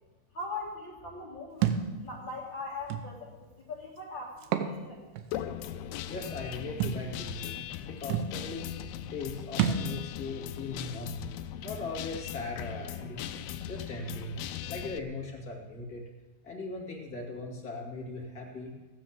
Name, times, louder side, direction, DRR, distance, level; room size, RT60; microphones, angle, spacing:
voice 1, 0.3-5.1, left 3 dB, 70° left, -3 dB, 1.1 m, -41 dB
Thump thud, 1.6-1.9 2.9-3.0 4.4-4.7 5.2-5.3 6.8-7.0 7.8-7.9 8.1-8.3 9.6-9.9, right 9 dB, 85° right, 3.2 m, -28 dB
Guitar, 5.3-15.0, left 10 dB, 85° left, 2.3 m, -39 dB
voice 2, 6.1-8.8 9.1-11.2 11.6-13.2 13.7-14.4 14.7-16.0 16.4-18.7, left 3 dB, 30° left, -1 dB, 1.7 m, -39 dB
19.0 x 7.7 x 7.4 m, 1.2 s
omnidirectional pair, 5.2 m